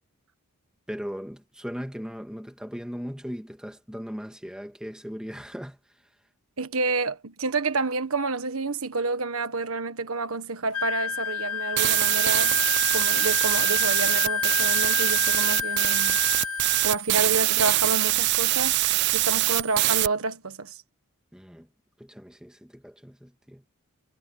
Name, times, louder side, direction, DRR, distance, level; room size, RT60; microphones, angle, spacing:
voice 1, 0.9-5.8 21.3-21.7 22.0-23.6, equal, 5° right, 2.0 m, -38 dB
voice 2, 6.6-12.6 12.9-16.2 16.8-18.8 19.1-20.8, right 3 dB, 75° right, 1.4 m, -29 dB
Wind instrument woodwind instrument, 10.7-17.0, left 8 dB, 80° left, 0.7 m, -29 dB
sound 1, 11.8-20.1, right 17 dB, 50° right, 0.4 m, -23 dB
head